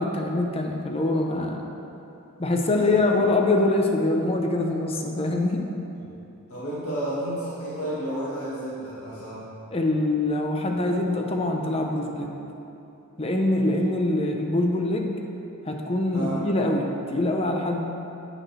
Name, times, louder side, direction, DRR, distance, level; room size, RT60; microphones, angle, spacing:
voice 1, 0.0-1.6 2.4-5.6 9.7-12.3 13.2-15.2 15.6-17.8, left 2 dB, 25° left, 2 dB, 0.8 m, -24 dB
voice 2, 2.7-3.0 6.5-9.5 16.1-16.4, right 1 dB, 75° left, -10 dB, 1.9 m, -31 dB
10.5 x 8.9 x 3.3 m, 2.8 s
head